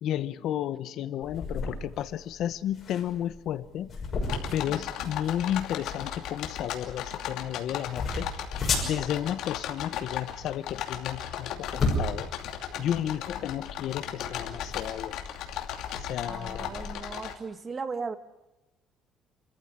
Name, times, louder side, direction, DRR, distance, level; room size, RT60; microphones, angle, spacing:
voice 1, 0.0-3.9 4.5-8.3 8.8-12.3 12.8-15.2 16.0-16.9, left 11 dB, 60° left, 15 dB, 0.8 m, -32 dB
sound 1, 1.2-16.9, left 3 dB, 30° left, 6.1 m, -35 dB
sound 2, 4.2-17.3, left 10 dB, 75° left, 2.6 m, -36 dB
voice 2, 4.5-4.9 12.7-13.1 16.2-18.2, right 4 dB, 25° right, 10 dB, 1.3 m, -38 dB
28.0 x 14.5 x 9.9 m, 1.0 s
cardioid pair, 160°, 0 cm